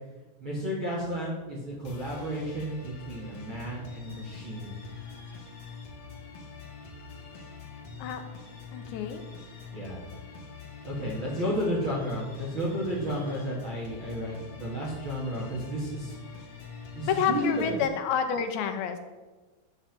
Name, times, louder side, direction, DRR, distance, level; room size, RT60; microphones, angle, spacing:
voice 1, 0.4-4.8 9.7-10.0 10.8-16.2 16.9-17.8, equal, 45° right, -5 dB, 1.7 m, -32 dB
sound 1, 1.8-17.8, left 5 dB, 45° left, 2.6 m, -44 dB
voice 2, 8.7-9.2 17.0-19.0, left 7 dB, 80° left, 6 dB, 3.0 m, -28 dB
11.0 x 5.6 x 7.5 m, 1.2 s
omnidirectional pair, 5.3 m